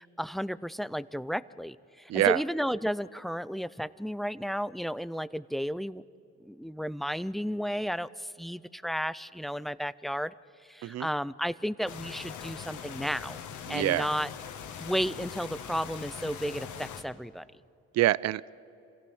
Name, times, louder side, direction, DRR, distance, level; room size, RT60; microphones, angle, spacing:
voice 1, 0.0-6.0 6.5-10.3 10.7-13.4 13.7-14.3 14.8-17.5, equal, ahead, 18 dB, 0.4 m, -33 dB
voice 2, 2.1-2.4 10.8-11.1 13.7-14.1 17.9-18.5, right 14 dB, 60° right, 22 dB, 0.5 m, -26 dB
sound 1, 11.9-17.0, left 8 dB, 75° left, 1.6 m, -42 dB
26.5 x 16.0 x 7.1 m, 2.8 s
cardioid pair, 90°, 30 cm